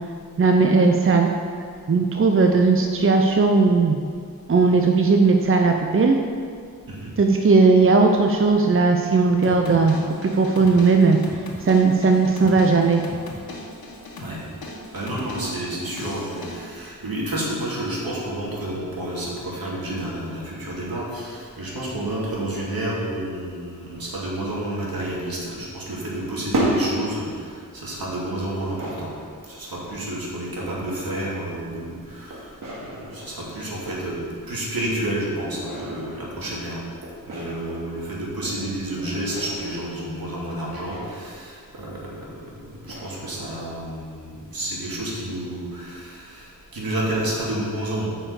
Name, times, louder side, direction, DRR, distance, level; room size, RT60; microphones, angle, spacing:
voice 1, 0.4-1.3 1.9-4.0 4.5-6.2 7.2-11.2 11.6-13.0, right 4 dB, 35° right, 3 dB, 0.6 m, -17 dB
sound 1, 9.4-16.6, left 1 dB, 80° left, 1.5 m, -38 dB
voice 2, 14.9-29.1 29.5-32.5 32.8-34.2 34.5-36.8 37.3-42.5 42.8-48.1, right 1 dB, 80° right, -5 dB, 2.7 m, -30 dB
sound 2, 24.1-24.6 24.9-25.5 26.0-27.9 28.2-29.5 30.5-31.8 32.3-34.3 35.3-38.0 38.4-40.0 40.9-41.5 41.9-42.0 42.8-43.3, right 1 dB, 65° right, 2.5 m, -33 dB
9.2 x 5.7 x 7.1 m, 2.1 s
wide cardioid pair, 110°, 35 cm